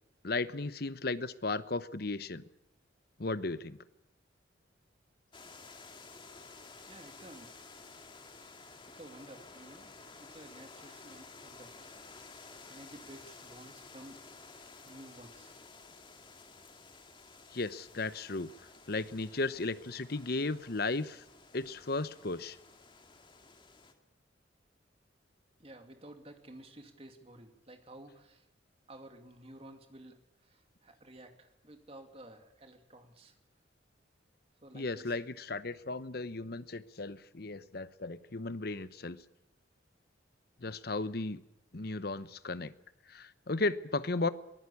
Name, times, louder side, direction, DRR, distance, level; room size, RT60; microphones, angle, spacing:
voice 1, 0.2-2.4 3.2-3.8 17.5-18.5 18.9-21.2 21.5-22.6 34.7-39.2 40.6-41.4 41.7-42.7 43.1-44.3, left 3 dB, 50° left, 15 dB, 0.9 m, -35 dB
sound 1, 5.3-23.9, left 4 dB, 25° left, 2.2 m, -53 dB
voice 2, 6.9-7.5 8.8-9.9 10.2-11.8 12.7-15.6 25.6-28.5 28.9-33.4 34.6-35.2, right 1 dB, 30° right, 6 dB, 2.4 m, -53 dB
23.0 x 16.0 x 8.5 m, 0.92 s
head